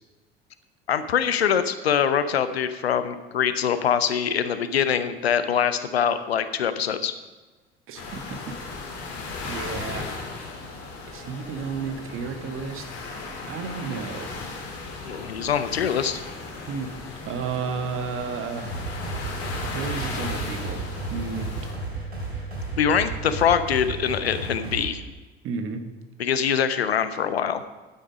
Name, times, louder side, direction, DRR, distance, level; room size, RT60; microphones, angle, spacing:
voice 1, 0.9-7.1 15.1-16.2 22.8-25.0 26.2-27.6, left 8 dB, 80° left, 12 dB, 0.8 m, -24 dB
voice 2, 7.9-8.5 9.4-10.1 11.1-12.8 13.5-14.3 16.7-16.9 17.3-18.7 19.0-19.2 19.7-20.8 21.1-21.5 25.4-25.8, right 5 dB, 40° right, 7 dB, 1.6 m, -32 dB
sound 1, 8.0-21.7, left 3 dB, 50° left, 2.5 m, -36 dB
sound 2, 18.6-24.8, right 3 dB, 85° right, 2.7 m, -33 dB
11.0 x 9.5 x 5.1 m, 1.2 s
figure-of-eight pair, 65°, 31 cm